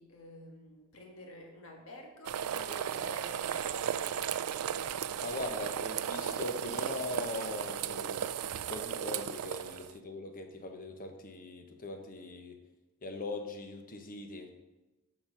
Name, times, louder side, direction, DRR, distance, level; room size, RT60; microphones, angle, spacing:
voice 1, 0.0-3.9, left 1 dB, 65° left, 1 dB, 1.6 m, -50 dB
sound 1, 2.2-9.9, right 9 dB, 85° right, 0.4 m, -35 dB
voice 2, 5.2-12.5 13.0-14.5, left 2 dB, 40° left, 5 dB, 1.0 m, -41 dB
7.9 x 5.8 x 5.0 m, 1.1 s
head